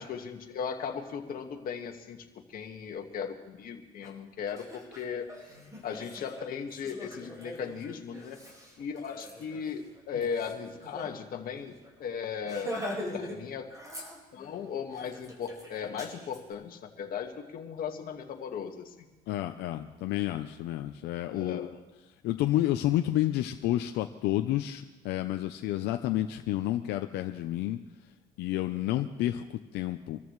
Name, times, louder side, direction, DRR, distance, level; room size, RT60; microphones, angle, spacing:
voice 1, 0.0-5.3 5.8-8.4 8.8-12.8 13.1-13.7 14.3-18.9 21.3-21.7, left 7 dB, 60° left, 4 dB, 1.8 m, -37 dB
Laughter, 4.0-4.1 4.5-11.1 11.4-11.5 11.8-12.0 12.4-13.4 13.7-14.5 14.9-16.4, left 1 dB, 20° right, 4.8 m, -42 dB
voice 2, 19.3-21.7 22.2-27.8 28.4-30.2, left 14 dB, 80° left, 6 dB, 0.7 m, -30 dB
26.0 x 14.0 x 3.2 m, 1.1 s
cardioid pair, 110°, 17 cm